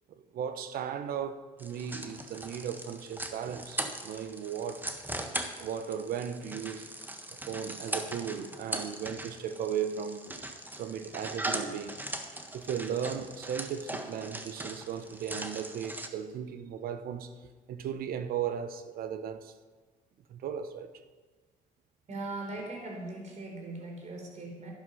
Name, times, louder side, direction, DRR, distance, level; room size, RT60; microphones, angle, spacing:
voice 1, 0.2-4.8 5.1-6.9 7.5-10.2 10.8-12.0 12.5-17.3 17.7-19.5 20.3-20.9, right 8 dB, 80° right, 1.0 m, -36 dB
sound 1, 1.6-16.1, right 1 dB, 10° right, 1.3 m, -39 dB
voice 2, 22.1-24.7, right 2 dB, 50° right, 4.0 m, -39 dB
11.5 x 11.0 x 5.6 m
cardioid pair, 90°, 15 cm